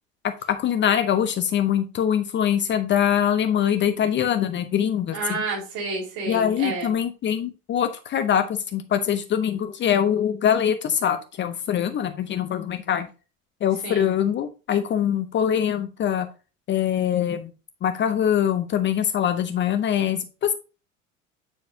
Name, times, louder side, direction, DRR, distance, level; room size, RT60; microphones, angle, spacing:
voice 1, 0.2-5.4 6.3-13.1 13.6-16.3 16.7-17.5 17.8-20.5, left 9 dB, 30° left, 9 dB, 0.8 m, -23 dB
voice 2, 5.1-6.9 13.8-14.1, right 3 dB, 50° right, 1 dB, 3.6 m, -30 dB
9.2 x 5.1 x 2.7 m, 0.32 s
figure-of-eight pair, 70°, 40 cm